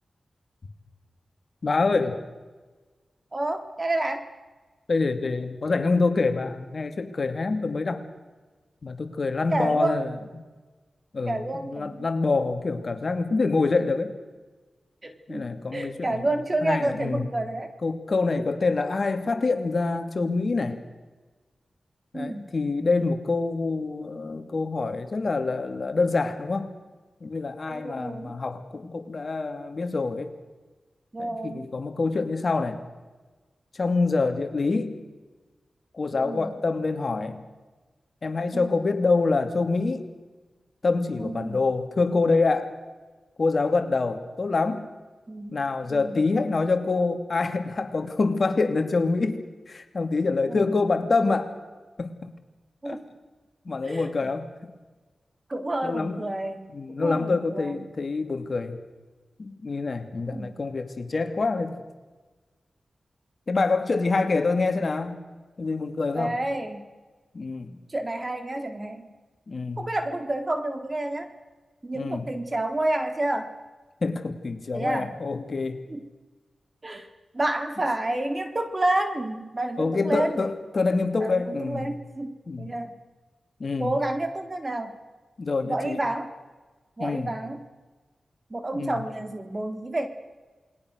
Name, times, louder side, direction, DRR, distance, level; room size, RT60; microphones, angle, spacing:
voice 1, 1.6-2.2 4.9-8.0 8.8-10.1 11.1-14.1 15.3-16.2 16.6-17.2 17.8-20.8 22.1-26.7 27.2-30.3 31.2-32.8 33.7-35.0 35.9-37.4 38.2-40.0 40.8-42.8 43.4-44.9 45.5-51.5 52.0-52.1 52.8-53.0 53.6-54.7 55.8-56.2 56.7-58.8 59.4-61.8 63.5-65.1 65.6-66.4 67.3-67.8 69.5-69.8 71.9-72.3 74.0-75.8 79.8-81.9 82.5-82.7 83.6-83.9 85.4-86.0 87.0-87.3 88.7-89.0, left 3 dB, 55° left, 7 dB, 2.8 m, -26 dB
voice 2, 3.3-4.2 9.5-10.0 11.3-12.1 15.0-15.5 15.7-17.7 22.1-22.5 27.7-28.4 31.1-31.7 36.2-36.5 38.5-38.8 41.2-41.7 45.3-45.6 45.9-46.3 50.5-50.9 52.8-53.1 53.7-54.3 55.5-57.9 60.3-60.6 66.1-66.8 67.9-69.1 69.8-71.3 71.8-73.5 74.7-75.1 75.9-76.1 76.8-77.1 77.3-80.5 81.2-83.0 83.8-85.0 85.6-86.3 87.0-87.6 88.5-90.1, right 1 dB, 35° right, 7 dB, 3.7 m, -29 dB
28.0 x 21.5 x 6.6 m, 1.3 s
cardioid pair, 55°, 0 cm